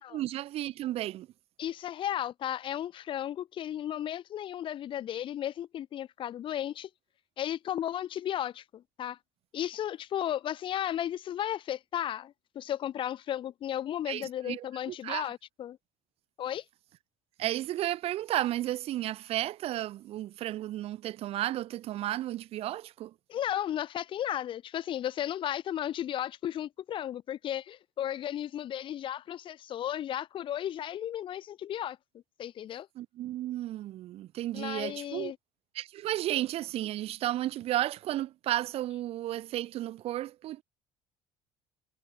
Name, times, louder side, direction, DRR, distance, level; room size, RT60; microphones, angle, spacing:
voice 1, 0.1-1.3 14.1-15.3 17.4-23.1 33.0-35.3 35.7-40.6, right 14 dB, 55° right, 0.7 m, -33 dB
voice 2, 1.6-6.9 7.4-9.2 9.5-15.8 16.4-16.6 23.3-32.0 32.4-32.9 34.5-35.4, left 11 dB, 45° left, 0.5 m, -34 dB
hypercardioid pair, 75°, 12 cm